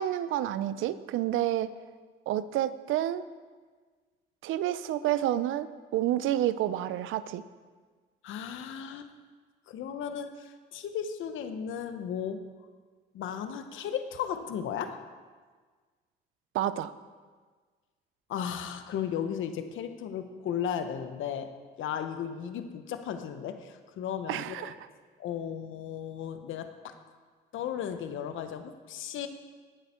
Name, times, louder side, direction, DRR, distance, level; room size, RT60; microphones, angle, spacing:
voice 1, 0.0-1.7 2.3-3.2 4.4-7.4 16.5-16.9 24.3-24.7, right 12 dB, 85° right, 15 dB, 0.6 m, -29 dB
voice 2, 8.2-9.1 9.7-12.4 13.1-15.0 18.3-21.5 21.8-24.7 25.2-27.0 27.5-29.3, left 8 dB, 80° left, 9 dB, 1.0 m, -35 dB
18.5 x 8.1 x 4.4 m, 1.5 s
cardioid pair, 90°, 20 cm